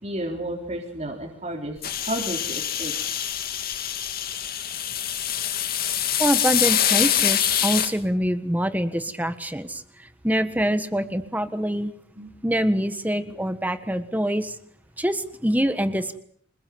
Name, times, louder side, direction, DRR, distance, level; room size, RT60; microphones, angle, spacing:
voice 1, 0.0-2.9 12.2-12.3, right 1 dB, 35° right, -1 dB, 3.9 m, -32 dB
sound 1, 1.8-7.9, left 10 dB, 45° left, 2.5 m, -25 dB
voice 2, 6.2-11.9 12.4-14.6 15.0-16.2, equal, 10° right, 10 dB, 1.4 m, -25 dB
27.0 x 21.0 x 7.9 m, 0.63 s
head